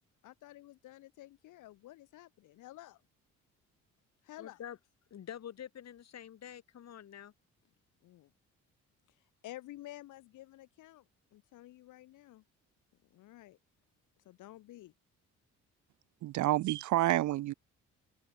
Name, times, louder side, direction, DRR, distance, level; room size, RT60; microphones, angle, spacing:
voice 1, 0.2-3.0 4.2-4.6 8.0-8.3 9.4-12.4 13.1-13.6 14.2-14.9, left 15 dB, 90° left, 4.6 m, -51 dB
voice 2, 4.4-4.8 5.1-7.3, left 9 dB, 60° left, 3.1 m, -47 dB
voice 3, 16.2-17.5, right 15 dB, 75° right, 0.7 m, -29 dB
open air
cardioid pair, 90°, 30 cm